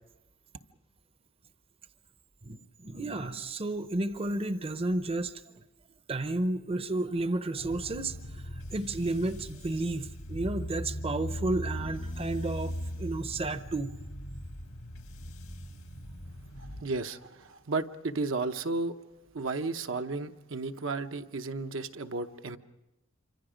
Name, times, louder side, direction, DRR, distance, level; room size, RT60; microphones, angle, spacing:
voice 1, 2.4-5.3 6.1-14.0, right 2 dB, 30° right, 11 dB, 0.7 m, -32 dB
sound 1, 7.6-16.8, equal, 85° left, 2.1 m, -39 dB
voice 2, 16.6-19.0 19.3-22.6, right 3 dB, 70° right, 7 dB, 0.9 m, -33 dB
27.5 x 25.5 x 5.1 m, 1.0 s
head